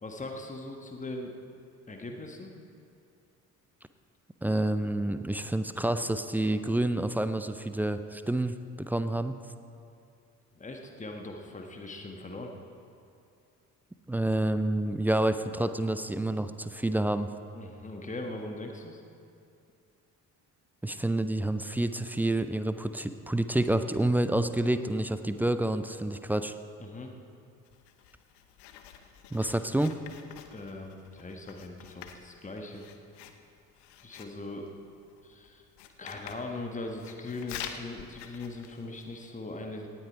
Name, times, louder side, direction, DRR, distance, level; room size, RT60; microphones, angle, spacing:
voice 1, 0.0-1.3 1.9-2.5 10.5-12.5 17.5-19.0 26.8-27.1 30.5-32.9 34.0-34.7 35.2-35.6 36.0-39.9, left 2 dB, 15° left, 2 dB, 1.5 m, -40 dB
voice 2, 4.4-9.4 14.1-17.3 20.8-26.5 29.3-30.0, right 1 dB, 5° right, 10 dB, 0.3 m, -28 dB
Writing, 27.6-39.3, left 9 dB, 55° left, 0.9 m, -48 dB
18.0 x 9.1 x 4.7 m, 2.5 s
figure-of-eight pair, 40°, 47 cm